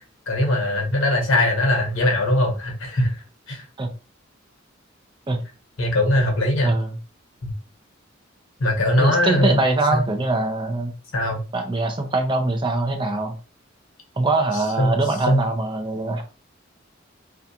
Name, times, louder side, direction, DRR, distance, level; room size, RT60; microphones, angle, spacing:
voice 1, 0.3-3.2 3.5-3.6 5.8-6.7 7.4-7.5 8.6-9.6 9.9-10.1 11.1-11.4 14.8-15.0 15.3-15.4, left 1 dB, 80° left, 0.9 m, -20 dB
voice 2, 9.0-10.9 11.5-13.4 14.2-16.2, right 2 dB, 25° right, 0.5 m, -23 dB
2.5 x 2.3 x 2.7 m
head